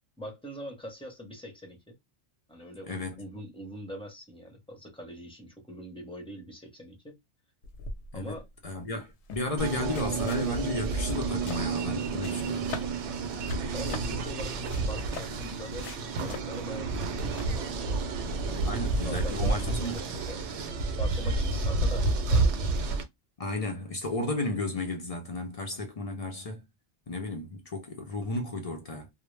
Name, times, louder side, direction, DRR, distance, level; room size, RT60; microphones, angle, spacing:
voice 1, 0.2-1.9 2.5-7.1 8.1-8.5 13.7-18.1 18.5-18.7 19.0-20.7 21.0-22.5, equal, 5° left, 0.6 m, -42 dB
voice 2, 2.9-3.2 8.1-12.7 18.6-20.0 23.4-26.6 27.1-29.1, left 2 dB, 55° left, 0.4 m, -33 dB
sound 1, 7.6-18.5, left 3 dB, 85° left, 0.9 m, -44 dB
sound 2, 9.6-20.5, right 6 dB, 65° right, 0.3 m, -38 dB
sound 3, 9.6-23.0, right 3 dB, 85° right, 0.9 m, -30 dB
2.1 x 2.0 x 3.1 m
omnidirectional pair, 1.2 m